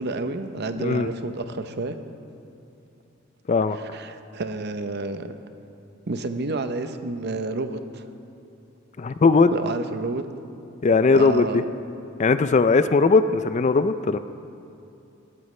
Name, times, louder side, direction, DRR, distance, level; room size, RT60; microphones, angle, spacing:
voice 1, 0.0-2.0 3.7-5.3 6.1-8.0 9.5-10.2 11.1-11.7, right 3 dB, 55° right, 9 dB, 0.8 m, -30 dB
voice 2, 9.0-9.5 10.8-11.6 12.2-14.2, left 4 dB, 35° left, 12 dB, 0.4 m, -19 dB
19.0 x 14.0 x 3.2 m, 2.8 s
head